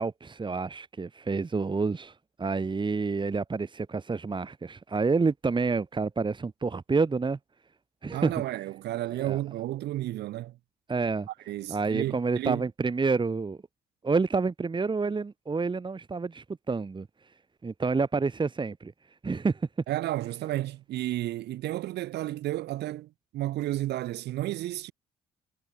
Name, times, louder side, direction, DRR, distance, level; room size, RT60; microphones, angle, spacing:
voice 1, 0.0-7.4 8.0-8.3 9.2-9.4 10.9-11.3 11.7-13.6 14.0-17.1 17.6-18.9 19.2-19.7, right 4 dB, 25° right, 1.9 m, -28 dB
voice 2, 8.1-10.6 11.5-12.6 19.9-24.9, right 15 dB, 65° right, 7.6 m, -32 dB
hypercardioid pair, 55°, 18 cm